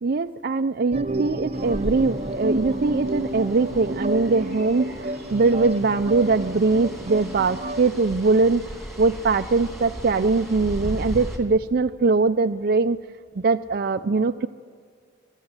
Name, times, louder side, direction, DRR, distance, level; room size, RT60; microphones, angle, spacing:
voice 1, 0.0-8.6 9.0-13.0 13.4-14.5, right 3 dB, 55° right, 7 dB, 0.5 m, -21 dB
sound 1, 0.9-7.9, right 1 dB, 35° right, 0.8 m, -30 dB
sound 2, 1.5-11.4, equal, ahead, 2.8 m, -37 dB
23.5 x 14.0 x 9.7 m, 2.1 s
head